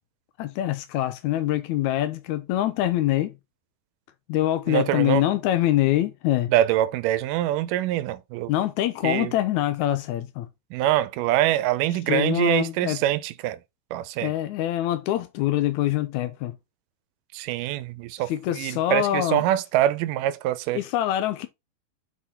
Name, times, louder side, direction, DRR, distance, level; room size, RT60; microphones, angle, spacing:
voice 1, 0.4-3.3 4.3-6.5 8.5-10.5 12.1-13.0 14.2-16.5 18.3-19.4 20.7-21.5, left 13 dB, 85° left, 1.6 m, -24 dB
voice 2, 4.7-5.2 6.5-8.5 9.0-9.3 10.7-13.6 13.9-14.3 17.3-20.8, right 13 dB, 80° right, 2.1 m, -24 dB
7.3 x 4.3 x 4.3 m
omnidirectional pair, 4.2 m